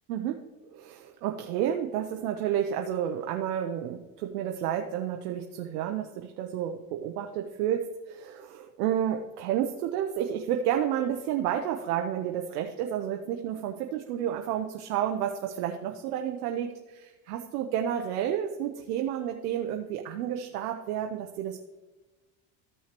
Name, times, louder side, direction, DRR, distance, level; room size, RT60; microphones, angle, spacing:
voice 1, 0.7-21.6, right 10 dB, 85° right, 4 dB, 0.8 m, -31 dB
14.0 x 5.6 x 3.0 m, 1.2 s
supercardioid pair, 90°, 45 cm